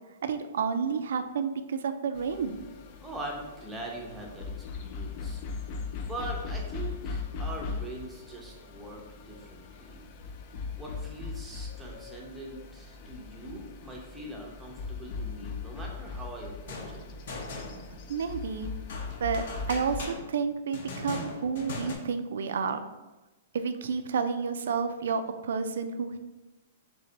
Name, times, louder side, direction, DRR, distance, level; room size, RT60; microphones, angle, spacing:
voice 1, 0.2-2.6 18.1-18.7 19.2-22.9 23.5-26.2, right 5 dB, 75° right, 9 dB, 0.3 m, -30 dB
sound 1, 2.1-20.1, left 4 dB, 35° left, 0.4 m, -39 dB
voice 2, 3.0-5.4 6.0-10.0 10.8-17.0, right 1 dB, 5° right, -2 dB, 0.7 m, -42 dB
sound 2, 16.6-18.2 18.9-22.0, left 3 dB, 60° left, 0.8 m, -39 dB
3.3 x 3.2 x 3.9 m, 1.1 s
hypercardioid pair, 160°, 0 cm